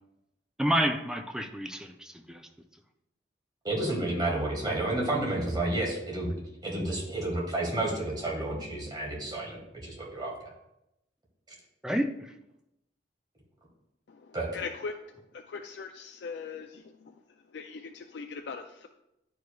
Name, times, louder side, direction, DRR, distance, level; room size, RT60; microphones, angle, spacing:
voice 1, 0.6-2.5 11.8-12.3, equal, 5° right, 5 dB, 0.4 m, -29 dB
voice 2, 3.6-6.3 6.6-10.5 14.3-14.5, right 2 dB, 25° right, -3 dB, 1.6 m, -31 dB
voice 3, 14.1-18.9, left 5 dB, 65° left, 5 dB, 0.4 m, -41 dB
10.5 x 4.7 x 2.3 m, 0.86 s
head